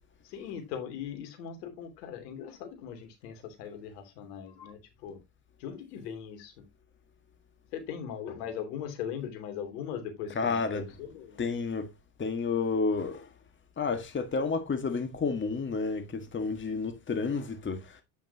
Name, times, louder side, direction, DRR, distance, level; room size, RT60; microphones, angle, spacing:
voice 1, 0.2-5.2 5.6-6.5 7.7-11.4, left 8 dB, 80° left, 3.0 m, -39 dB
voice 2, 10.3-10.8 11.4-11.9 12.2-13.3 13.8-18.0, left 4 dB, 25° left, 1.7 m, -30 dB
9.0 x 7.5 x 2.8 m
supercardioid pair, 95°, 47 cm